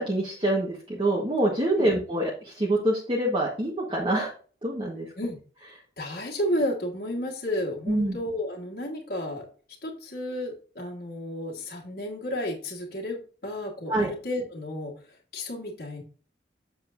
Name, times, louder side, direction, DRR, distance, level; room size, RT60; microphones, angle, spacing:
voice 1, 0.1-4.3 4.6-5.1 7.9-8.2 13.9-14.1, right 1 dB, 30° right, -3 dB, 1.3 m, -25 dB
voice 2, 6.0-9.5 9.8-16.0, left 1 dB, 50° left, -2 dB, 1.6 m, -32 dB
7.7 x 7.1 x 2.6 m, 0.40 s
head